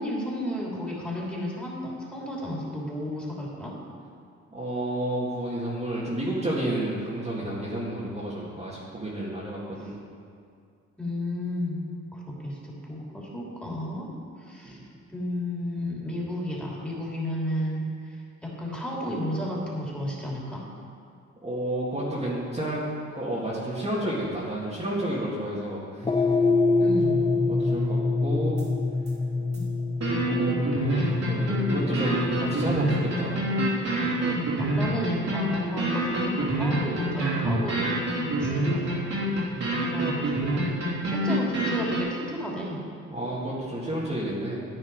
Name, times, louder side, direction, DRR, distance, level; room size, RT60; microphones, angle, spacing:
voice 1, 0.0-3.8 11.0-11.8 12.1-14.1 14.4-14.8 15.1-20.6 26.8-27.2 29.3-29.7 34.3-37.8 38.2-39.1 39.9-40.7 41.0-42.8, left 1 dB, 5° left, -4 dB, 3.0 m, -33 dB
voice 2, 4.5-10.0 14.6-14.9 21.4-22.8 23.1-26.1 27.5-28.6 30.2-33.3 39.5-40.2 43.1-44.6, right 1 dB, 20° right, -7 dB, 2.1 m, -31 dB
sound 1, 26.0-34.5, left 3 dB, 20° left, 0.7 m, -26 dB
sound 2, 28.6-28.7 29.1-29.2 29.5-29.6 30.0-42.0, right 1 dB, 60° right, 2.8 m, -26 dB
10.5 x 9.5 x 4.7 m, 2.3 s
cardioid pair, 90°, 30 cm